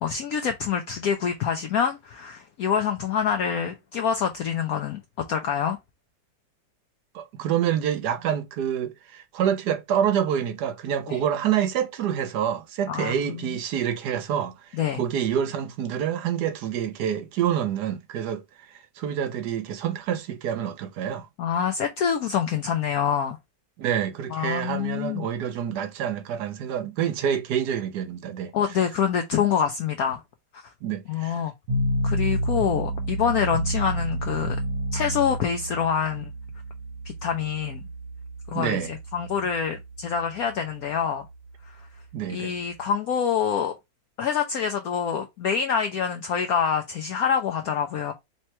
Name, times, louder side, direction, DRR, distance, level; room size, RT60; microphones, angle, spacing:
voice 1, 0.0-5.8 11.1-11.2 12.9-13.6 14.7-15.0 21.4-23.4 24.3-25.3 28.5-30.2 30.5-30.6 31.1-31.5 32.0-34.6 34.9-36.3 37.0-37.8 38.5-41.3 41.8-41.9 42.3-43.7 44.2-48.1, left 7 dB, 70° left, 0.9 m, -26 dB
voice 2, 7.1-21.3 23.8-28.5 30.8-31.4 38.5-38.9 42.1-42.6, right 9 dB, 70° right, 1.1 m, -27 dB
sound 1, 31.7-42.8, right 1 dB, 55° right, 1.2 m, -31 dB
3.3 x 3.0 x 4.2 m
omnidirectional pair, 2.0 m